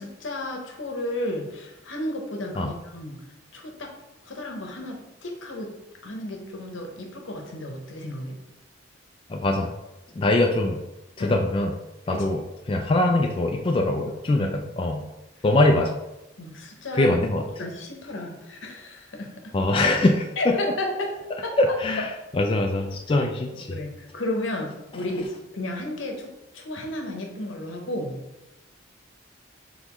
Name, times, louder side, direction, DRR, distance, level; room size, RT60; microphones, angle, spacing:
voice 1, 0.0-3.2 3.5-3.9 4.2-5.8 6.0-8.3 11.2-11.4 12.1-12.3 16.4-17.1 17.6-19.5 20.4-21.1 21.4-21.8 23.5-26.3 26.5-28.3, left 1 dB, 85° left, 2 dB, 0.9 m, -33 dB
voice 2, 9.3-9.7 10.2-10.8 11.2-11.7 12.1-12.4 12.7-15.0 15.4-15.9 16.9-17.5 19.5-20.5 21.6-22.1 22.3-23.7, left 2 dB, 25° left, 2 dB, 0.3 m, -22 dB
4.0 x 3.9 x 3.0 m, 0.96 s
head